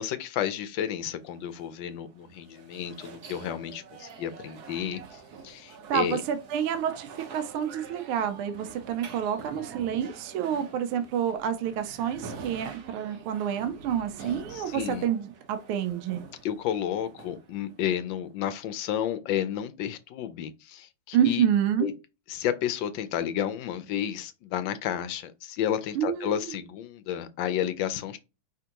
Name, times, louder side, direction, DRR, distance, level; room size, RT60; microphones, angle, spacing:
voice 1, 0.0-6.2 14.2-15.0 16.4-21.4 21.8-21.9 22.3-28.2, left 10 dB, 75° left, 1.2 m, -31 dB
sound 1, 1.2-18.3, right 5 dB, 60° right, 1.2 m, -46 dB
voice 2, 5.9-16.2 21.1-21.9 25.9-26.4, right 9 dB, 80° right, 1.5 m, -28 dB
5.0 x 3.5 x 2.9 m
omnidirectional pair, 2.4 m